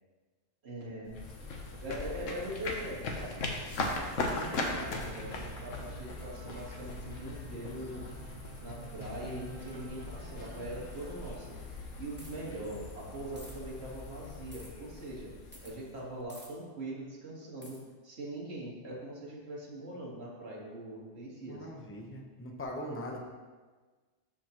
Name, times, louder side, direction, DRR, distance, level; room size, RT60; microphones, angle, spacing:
voice 1, 0.6-1.1 1.8-3.4 3.9-8.1 8.6-11.6 12.0-15.3 15.6-17.8 18.0-21.7, right 1 dB, 55° right, -5 dB, 1.8 m, -42 dB
sound 1, 1.1-16.2, left 2 dB, 80° left, 1.3 m, -40 dB
sound 2, 4.6-11.4, right 2 dB, 85° right, 1.4 m, -50 dB
sound 3, 12.2-12.5 13.4-13.5 14.5-14.7 15.5-15.7 16.3-16.5 17.6-17.8, equal, 10° right, 1.2 m, -50 dB
voice 2, 21.5-23.2, left 1 dB, 15° left, 1 dB, 0.7 m, -41 dB
12.5 x 5.0 x 3.0 m, 1.4 s
omnidirectional pair, 1.3 m